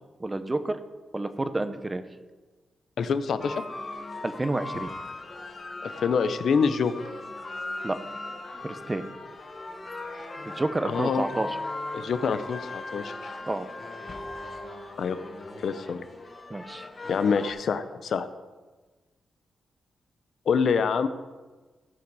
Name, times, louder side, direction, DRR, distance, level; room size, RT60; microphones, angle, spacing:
voice 1, 0.2-0.8 1.1-2.0 4.2-4.9 7.8-8.0 8.6-9.0 10.6-11.5 13.5-13.7 16.5-16.9, right 2 dB, 20° right, 10 dB, 0.7 m, -29 dB
voice 2, 3.0-3.6 5.8-6.9 10.8-11.3 11.9-13.3 15.0-15.2 15.6-16.0 17.1-18.3 20.5-21.1, left 6 dB, 65° left, 12 dB, 0.7 m, -26 dB
sound 1, 3.4-17.5, left 2 dB, 35° left, 1.2 m, -38 dB
16.0 x 6.0 x 4.8 m, 1.3 s
cardioid pair, 95°, 0 cm